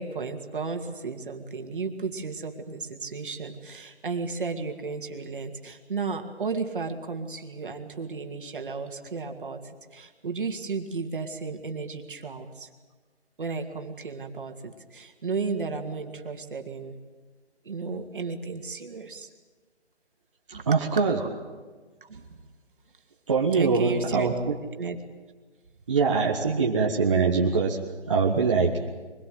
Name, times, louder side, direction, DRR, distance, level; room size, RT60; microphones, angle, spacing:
voice 1, 0.0-12.7 13.4-17.0 17.6-19.3 20.5-20.7 22.1-22.4 23.5-24.3 24.8-25.0 26.1-26.2, right 4 dB, 50° right, 5 dB, 2.5 m, -34 dB
voice 2, 20.7-21.2 23.3-24.3 25.9-27.8 28.1-28.7, right 5 dB, 25° right, -3 dB, 1.6 m, -23 dB
24.0 x 21.5 x 7.8 m, 1.4 s
hypercardioid pair, 175°, 34 cm